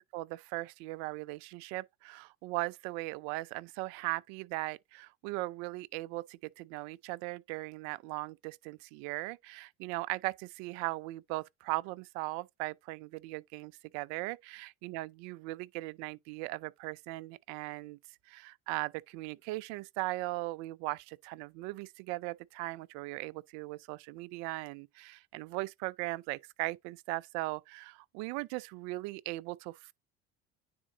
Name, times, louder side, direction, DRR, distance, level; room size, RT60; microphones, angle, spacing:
voice 1, 0.0-18.0 18.3-29.9, right 21 dB, 70° right, 0.5 m, -38 dB
9.7 x 3.7 x 2.8 m
supercardioid pair, 85°, 29 cm